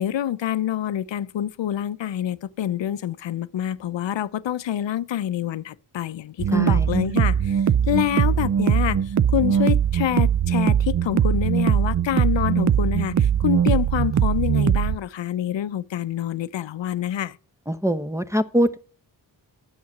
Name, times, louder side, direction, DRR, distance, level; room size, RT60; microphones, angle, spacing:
voice 1, 0.0-7.6 7.9-9.0 9.3-17.4, left 11 dB, 75° left, 0.6 m, -26 dB
sound 1, 6.4-15.0, right 8 dB, 40° right, 0.5 m, -21 dB
voice 2, 6.5-6.9 17.7-18.8, equal, 5° right, 0.9 m, -23 dB
9.4 x 7.5 x 5.9 m
cardioid pair, 45°, 45 cm